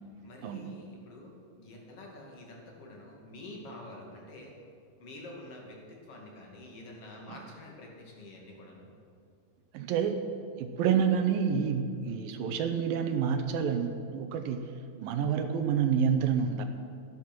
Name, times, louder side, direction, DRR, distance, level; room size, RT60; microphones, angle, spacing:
voice 1, 0.2-4.5 5.0-8.9, left 1 dB, 45° left, 0 dB, 2.9 m, -47 dB
voice 2, 9.7-10.2 10.6-14.7 15.0-16.6, right 7 dB, 80° right, 7 dB, 2.5 m, -28 dB
13.5 x 11.5 x 6.1 m, 2.3 s
omnidirectional pair, 4.2 m